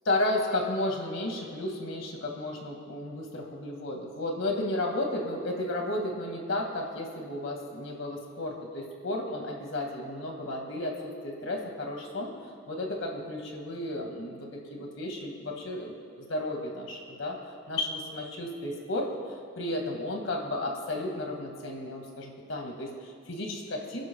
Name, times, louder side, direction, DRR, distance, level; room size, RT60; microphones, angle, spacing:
voice 1, 0.1-12.3 12.7-17.4 17.7-19.1 19.6-24.1, left 1 dB, 90° left, 1 dB, 2.1 m, -33 dB
29.5 x 10.5 x 2.4 m, 2.4 s
head